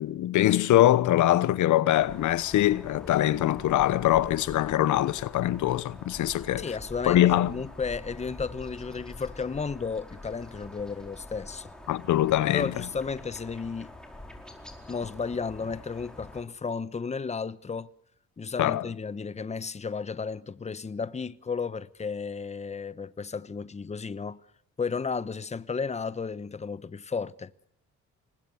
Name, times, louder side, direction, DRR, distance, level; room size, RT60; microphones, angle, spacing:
voice 1, 0.0-6.7 7.0-7.5 11.9-12.7 18.6-18.9, left 13 dB, 75° left, 0.9 m, -23 dB
sound 1, 1.9-16.4, left 1 dB, ahead, 4.7 m, -45 dB
voice 2, 6.6-7.2 7.5-11.7 12.5-13.9 14.9-17.9 18.4-24.4 24.8-27.5, left 5 dB, 20° left, 0.9 m, -33 dB
27.0 x 20.0 x 6.9 m
cardioid pair, 90°, 30 cm